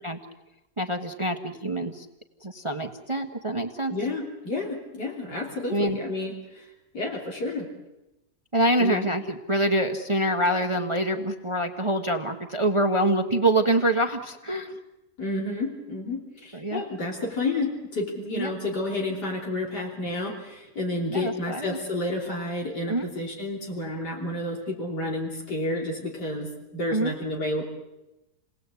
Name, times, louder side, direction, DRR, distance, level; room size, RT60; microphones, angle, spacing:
voice 1, 0.8-2.1 2.4-4.0 5.7-6.0 8.5-14.8 16.5-16.8 18.4-18.6 21.1-21.8 22.9-23.1 26.9-27.1, right 1 dB, 20° right, 5 dB, 1.2 m, -25 dB
voice 2, 3.9-6.7 6.9-7.7 8.8-9.1 15.2-27.6, left 2 dB, 80° left, -1 dB, 3.8 m, -30 dB
29.5 x 19.0 x 8.3 m, 0.98 s
omnidirectional pair, 1.8 m